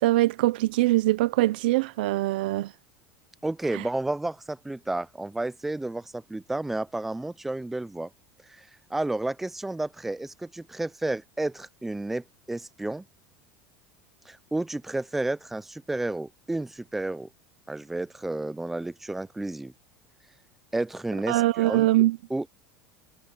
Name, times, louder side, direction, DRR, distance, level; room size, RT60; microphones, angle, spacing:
voice 1, 0.0-2.7 3.7-3.8 21.3-22.2, right 17 dB, 85° right, 0.6 m, -23 dB
voice 2, 3.4-8.1 8.5-13.0 14.3-17.3 17.7-19.7 20.7-21.9 22.3-22.5, right 2 dB, 5° right, 0.4 m, -31 dB
cardioid pair, 175°, 5 cm